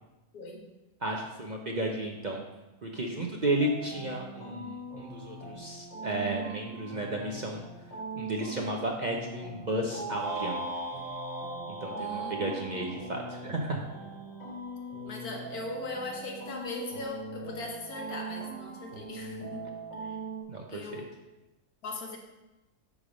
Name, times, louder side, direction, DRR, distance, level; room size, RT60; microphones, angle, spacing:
voice 1, 1.0-2.4 2.8-7.6 8.1-10.7 11.7-13.8 20.5-21.0, right 1 dB, 40° right, 0 dB, 0.6 m, -33 dB
sound 1, 3.6-20.4, right 3 dB, 65° left, 2.7 m, -41 dB
sound 2, 10.2-14.5, equal, 25° left, 1.2 m, -40 dB
voice 2, 12.0-12.9 15.0-19.7 20.0-20.2 20.7-21.1 21.8-22.2, left 2 dB, 85° left, 1 dB, 1.7 m, -40 dB
8.7 x 3.5 x 6.3 m, 1.0 s
omnidirectional pair, 1.5 m